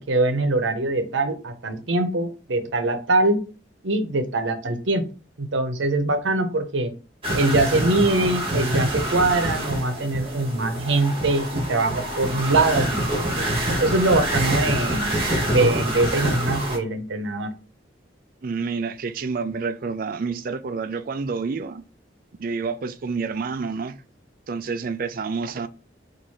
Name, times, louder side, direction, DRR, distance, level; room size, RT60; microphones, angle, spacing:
voice 1, 0.0-3.4 3.8-5.1 5.4-6.9 7.3-13.0 13.8-15.2 15.4-17.5, right 2 dB, 90° right, 0.8 m, -23 dB
sound 1, 7.2-16.8, right 1 dB, 30° right, 1.5 m, -26 dB
voice 2, 18.4-21.8 22.4-24.0 24.5-25.7, right 4 dB, 50° right, 0.4 m, -28 dB
4.7 x 2.6 x 4.1 m
head